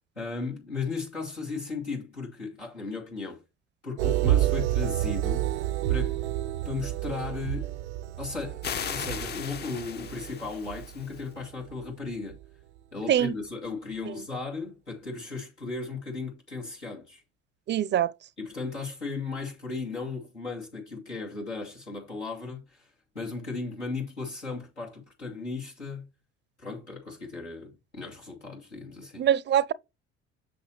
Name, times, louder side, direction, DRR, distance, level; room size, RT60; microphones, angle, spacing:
voice 1, 0.2-3.4 3.8-5.5 5.9-6.1 6.6-7.7 8.2-12.4 12.9-17.2 18.4-22.9 23.1-26.1 26.6-29.3, left 4 dB, 90° left, 2.6 m, -36 dB
sound 1, 4.0-11.9 12.3-12.4, right 14 dB, 80° right, 0.5 m, -29 dB
sound 2, 8.6-11.2, left 7 dB, 30° left, 0.6 m, -37 dB
voice 2, 17.7-18.1 29.2-29.7, right 10 dB, 35° right, 0.5 m, -23 dB
7.7 x 6.1 x 3.0 m
figure-of-eight pair, 60°, 33 cm